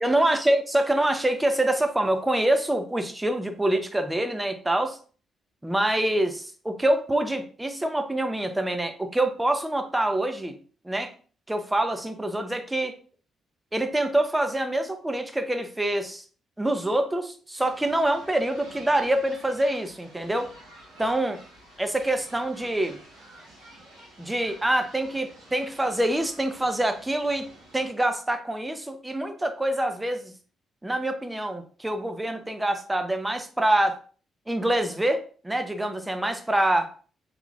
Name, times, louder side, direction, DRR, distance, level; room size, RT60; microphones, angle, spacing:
voice 1, 0.0-5.0 5.6-10.6 10.8-11.1 11.5-13.0 13.7-16.2 16.6-20.5 21.0-21.4 21.8-23.0 24.2-27.5 27.7-30.3 30.8-34.0 34.5-36.9, right 1 dB, 15° right, 7 dB, 0.6 m, -25 dB
sound 1, 17.6-27.9, right 1 dB, 85° right, 1.4 m, -50 dB
3.6 x 3.1 x 2.4 m, 0.40 s
figure-of-eight pair, 40°, 0 cm